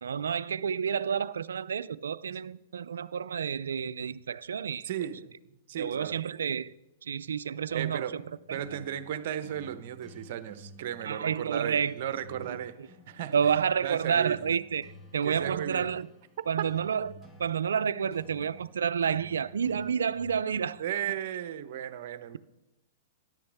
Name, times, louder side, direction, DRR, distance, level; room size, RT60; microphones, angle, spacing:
voice 1, 0.0-4.9 5.7-6.7 7.0-8.2 8.5-8.6 11.0-12.1 12.5-12.6 13.3-16.1 16.5-17.1 17.4-20.8, right 7 dB, 80° right, 0.4 m, -30 dB
voice 2, 4.8-5.3 5.7-6.2 7.7-8.2 8.5-13.5 13.8-14.4 15.2-15.9 20.8-22.4, right 10 dB, 60° right, 0.9 m, -35 dB
sound 1, 7.7-21.2, equal, 15° left, 1.8 m, -53 dB
13.5 x 11.0 x 3.5 m
hypercardioid pair, 120°, 0 cm